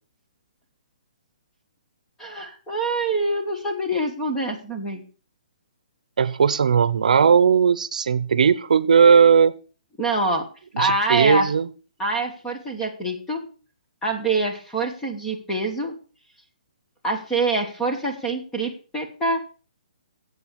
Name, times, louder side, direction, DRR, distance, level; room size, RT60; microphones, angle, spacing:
voice 1, 2.2-5.0 10.0-10.5 10.8-11.5 12.0-13.4 14.0-15.9 17.0-19.4, right 2 dB, 5° left, 2 dB, 1.4 m, -25 dB
voice 2, 6.2-9.6 10.7-11.7, right 6 dB, 70° right, 16 dB, 0.8 m, -17 dB
9.4 x 8.0 x 6.4 m, 0.38 s
hypercardioid pair, 175°, 4 cm